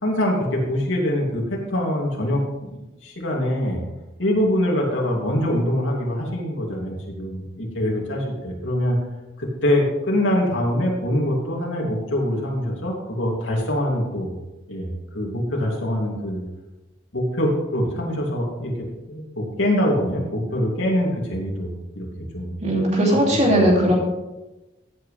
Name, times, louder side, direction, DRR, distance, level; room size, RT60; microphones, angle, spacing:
voice 1, 0.0-3.8 4.2-9.0 9.4-14.3 14.7-16.4 17.1-22.1 22.3-22.5 23.3-23.6, left 1 dB, 75° left, -2 dB, 2.9 m, -24 dB
voice 2, 22.6-23.9, equal, 35° right, -2 dB, 2.9 m, -18 dB
15.5 x 8.0 x 3.5 m, 1.0 s
head